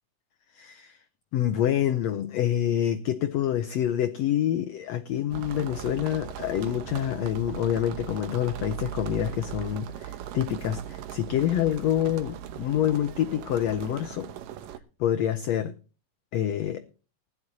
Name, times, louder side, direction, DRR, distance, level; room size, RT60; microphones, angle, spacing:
voice 1, 0.5-1.0 1.3-14.3 15.0-15.7 16.3-16.8, left 11 dB, 85° left, 10 dB, 1.5 m, -27 dB
sound 1, 5.3-14.8, right 11 dB, 85° right, 2.6 m, -39 dB
20.0 x 11.0 x 2.8 m, 0.35 s
omnidirectional pair, 3.9 m